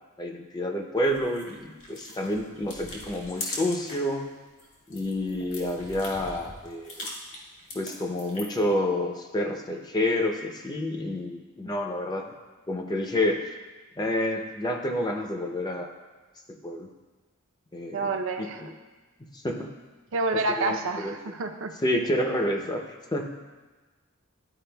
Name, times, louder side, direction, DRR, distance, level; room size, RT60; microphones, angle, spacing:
voice 1, 0.2-4.3 4.9-6.9 7.7-12.3 12.7-13.5 14.0-15.9 16.6-16.9 17.7-18.7 19.2-19.7 20.6-21.1 21.8-22.8 23.1-23.3, left 1 dB, 20° left, 3 dB, 0.5 m, -29 dB
sound 1, 1.0-4.1 4.5-8.7, left 2 dB, 70° left, 1.6 m, -41 dB
voice 2, 17.9-18.6 20.1-21.7, right 3 dB, 65° right, 5 dB, 0.5 m, -28 dB
12.0 x 4.6 x 2.2 m, 1.3 s
head